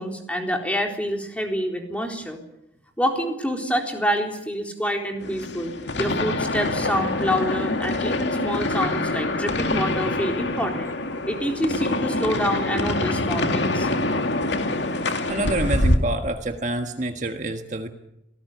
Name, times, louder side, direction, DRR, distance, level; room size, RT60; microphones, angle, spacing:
voice 1, 0.0-2.4 3.0-11.0 11.3-13.9, equal, 5° left, 2 dB, 3.9 m, -27 dB
sound 1, 5.2-16.0, left 2 dB, 70° left, 2.3 m, -25 dB
voice 2, 15.3-17.9, right 1 dB, 40° right, 5 dB, 1.5 m, -27 dB
27.0 x 18.5 x 9.4 m, 0.86 s
head